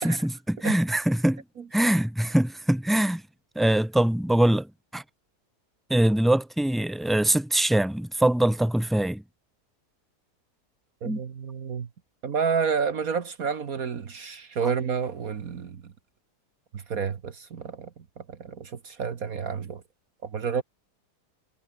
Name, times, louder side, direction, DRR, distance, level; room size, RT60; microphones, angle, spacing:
voice 1, 0.0-1.4 1.7-3.2 3.6-4.7 4.9-5.0 5.9-9.2 11.0-11.2 14.6-14.7, right 1 dB, ahead, 2.0 m, -23 dB
voice 2, 11.0-11.9 12.2-15.9 16.7-17.9 18.2-19.8 20.2-20.6, right 6 dB, 60° right, 1.8 m, -30 dB
omnidirectional pair, 1.7 m